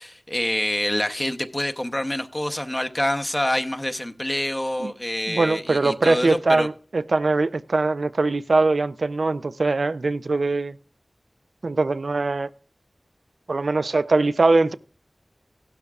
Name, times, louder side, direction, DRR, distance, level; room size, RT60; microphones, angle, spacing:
voice 1, 0.0-6.7, left 1 dB, 20° left, 0.8 m, -26 dB
voice 2, 5.3-10.8 11.6-12.5 13.5-14.8, right 3 dB, 90° right, 0.4 m, -22 dB
16.0 x 12.0 x 2.4 m
wide cardioid pair, 65°, 0 cm